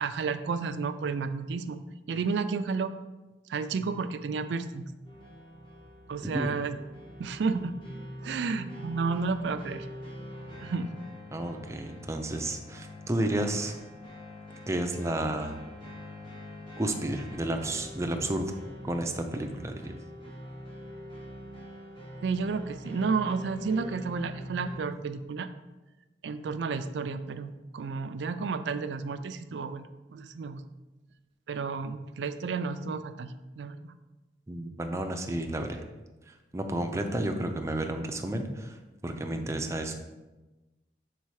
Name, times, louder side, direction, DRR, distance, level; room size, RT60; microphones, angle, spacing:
voice 1, 0.0-1.8 2.1-2.9 3.5-4.8 6.1-6.8 7.2-7.7 8.2-9.9 10.6-10.9 22.2-25.5 26.2-30.6 31.5-33.3 33.6-33.9, right 4 dB, 70° right, 10 dB, 0.4 m, -31 dB
sound 1, 5.0-24.8, equal, 30° left, 1.4 m, -44 dB
voice 2, 11.3-13.7 14.7-15.6 16.8-18.6 18.8-20.0 34.5-35.8 36.3-38.8 39.0-39.9, right 1 dB, 15° right, 4 dB, 0.5 m, -31 dB
5.5 x 4.2 x 4.7 m, 1.1 s
head